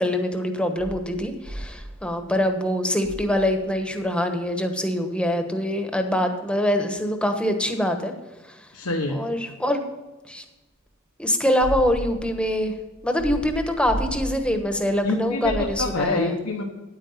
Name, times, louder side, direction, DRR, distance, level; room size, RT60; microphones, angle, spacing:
voice 1, 0.0-8.1 8.5-8.7 9.1-9.8 10.3-10.4 11.2-12.7 13.0-16.4, left 1 dB, 5° left, 5 dB, 1.1 m, -24 dB
sound 1, 0.8-2.6 3.0-3.9 11.6-16.1, right 1 dB, 20° right, 1.2 m, -35 dB
voice 2, 8.7-9.2 15.0-16.6, left 3 dB, 80° left, 1 dB, 1.2 m, -26 dB
9.6 x 8.8 x 5.7 m, 1.1 s
head